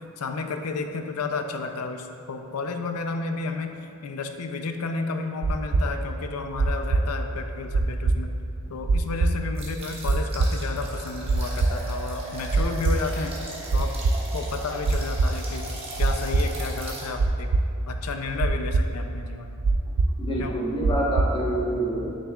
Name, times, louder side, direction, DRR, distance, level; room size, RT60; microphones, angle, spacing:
voice 1, 0.2-3.8 4.0-8.3 8.7-13.4 13.7-14.0 14.3-15.7 16.0-17.5 17.9-19.6 20.4-20.6, left 4 dB, 80° left, 6 dB, 0.5 m, -32 dB
sound 1, 5.4-21.5, right 3 dB, 75° right, 0.4 m, -24 dB
sound 2, 9.5-17.1, right 2 dB, 25° right, 1.3 m, -38 dB
voice 2, 20.2-22.1, right 1 dB, 20° left, -4 dB, 1.2 m, -27 dB
9.1 x 6.5 x 2.4 m, 2.6 s
head